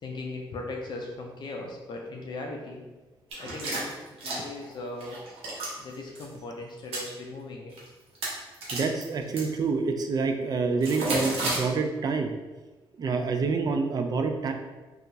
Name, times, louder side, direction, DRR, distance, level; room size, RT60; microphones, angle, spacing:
voice 1, 0.0-2.8 3.4-5.2 5.8-7.7, left 2 dB, 50° left, 1 dB, 0.4 m, -38 dB
sound 1, 3.3-4.7 5.0-5.7 6.1-6.2 6.8-7.1 7.7-7.9 8.1-9.4 10.8-11.6, right 2 dB, 85° right, 0.8 m, -31 dB
voice 2, 8.7-12.3 13.0-14.5, right 4 dB, 45° right, 5 dB, 0.3 m, -27 dB
2.7 x 2.4 x 2.7 m, 1.2 s
cardioid pair, 90°, 10 cm